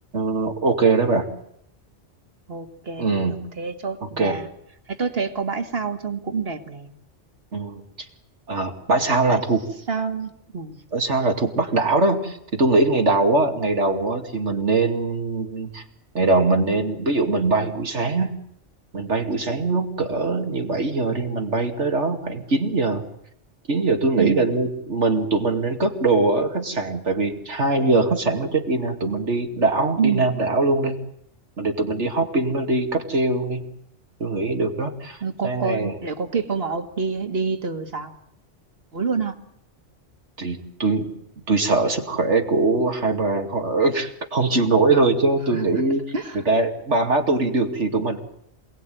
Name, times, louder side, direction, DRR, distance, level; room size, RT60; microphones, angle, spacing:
voice 1, 0.1-1.3 3.0-3.4 4.0-4.4 7.5-7.8 8.5-9.6 10.9-15.8 16.1-18.3 18.9-23.0 23.7-30.9 31.6-33.6 34.2-35.9 40.4-41.1 41.5-46.0 46.3-48.2, right 3 dB, 75° right, 4 dB, 2.8 m, -22 dB
voice 2, 2.5-4.5 4.9-6.9 9.3-9.4 9.9-10.8 24.2-24.5 30.0-30.2 35.2-38.1 38.9-39.4 45.5-45.8 46.1-46.4, right 5 dB, 55° right, 6 dB, 2.3 m, -27 dB
27.5 x 18.5 x 9.3 m, 0.74 s
omnidirectional pair, 1.2 m